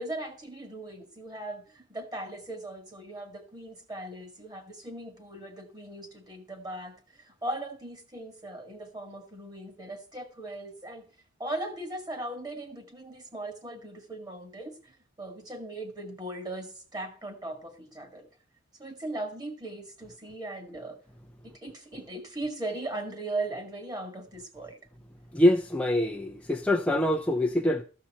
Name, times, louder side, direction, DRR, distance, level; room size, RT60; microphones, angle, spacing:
voice 1, 0.0-11.1 11.4-18.3 18.8-21.0 21.4-24.8, right 2 dB, 20° right, 2.1 m, -38 dB
voice 2, 25.3-27.8, left 1 dB, 5° left, 0.6 m, -24 dB
14.0 x 5.8 x 7.5 m
head